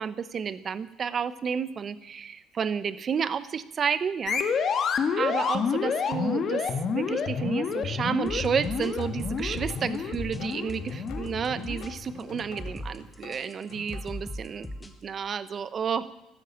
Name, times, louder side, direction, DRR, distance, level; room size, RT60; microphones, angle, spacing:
voice 1, 0.0-4.7 5.2-16.1, right 7 dB, 35° right, 15 dB, 0.9 m, -31 dB
sound 1, 4.3-12.4, left 6 dB, 45° left, 1.6 m, -29 dB
sound 2, 8.2-14.9, left 1 dB, 10° left, 1.6 m, -39 dB
sound 3, 8.4-14.0, left 7 dB, 70° left, 2.7 m, -46 dB
13.0 x 12.5 x 8.6 m, 0.94 s
cardioid pair, 120°, 0 cm